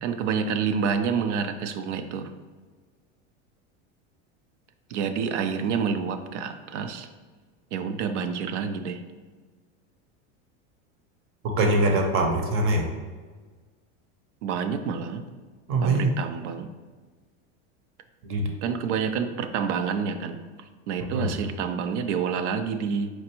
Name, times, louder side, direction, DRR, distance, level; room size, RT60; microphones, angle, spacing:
voice 1, 0.0-2.3 4.9-7.1 7.7-9.0 14.4-15.2 15.8-16.7 18.6-20.4 20.9-23.1, right 6 dB, 85° right, 8 dB, 0.5 m, -28 dB
voice 2, 11.6-12.9 15.7-16.1 18.2-18.5 21.1-21.3, right 2 dB, 40° right, 3 dB, 0.7 m, -23 dB
4.4 x 2.5 x 2.9 m, 1.4 s
supercardioid pair, 125°, 34 cm